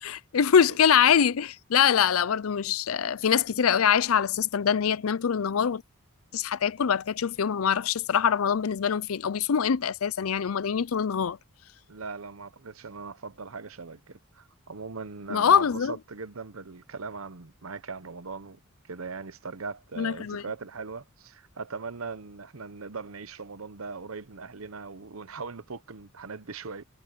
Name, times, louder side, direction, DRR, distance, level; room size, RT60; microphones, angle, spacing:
voice 1, 0.0-5.8 6.3-11.4 15.3-15.9 20.0-20.4, left 7 dB, 85° left, 0.5 m, -24 dB
voice 2, 11.9-18.6 18.9-26.8, right 4 dB, 80° right, 1.0 m, -40 dB
head